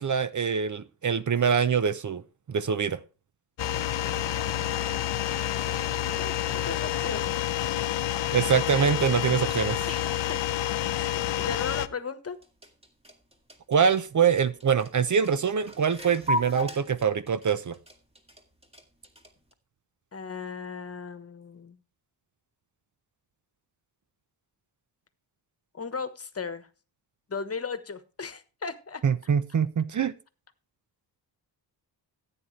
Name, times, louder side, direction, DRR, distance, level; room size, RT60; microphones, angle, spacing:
voice 1, 0.0-2.2 2.5-3.0 8.3-9.9 13.7-17.8 29.0-30.1, right 7 dB, 45° right, 0.8 m, -24 dB
sound 1, 3.6-11.9, left 12 dB, 80° left, 0.8 m, -29 dB
voice 2, 5.2-7.4 9.9-10.4 10.9-12.4 20.1-21.8 25.7-26.7 27.3-29.0, left 5 dB, 35° left, 1.3 m, -37 dB
sound 2, 12.3-19.5, left 1 dB, 15° right, 2.2 m, -35 dB
15.0 x 8.9 x 3.3 m
wide cardioid pair, 135°, 43 cm